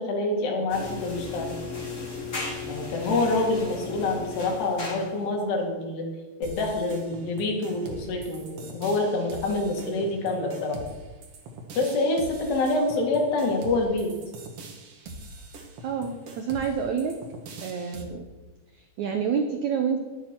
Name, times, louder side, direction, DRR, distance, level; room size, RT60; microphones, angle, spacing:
voice 1, 0.0-1.5 2.7-6.1 6.4-10.8 11.7-14.1, left 2 dB, 80° left, 1 dB, 4.3 m, -26 dB
sound 1, 0.7-5.3, left 4 dB, 30° left, 1.6 m, -35 dB
sound 2, 6.4-18.0, right 2 dB, 55° right, 1.8 m, -43 dB
voice 2, 15.8-17.1 17.6-18.3 18.7-20.0, right 6 dB, 90° right, 5 dB, 1.6 m, -28 dB
20.5 x 9.3 x 4.6 m, 1.2 s
omnidirectional pair, 4.7 m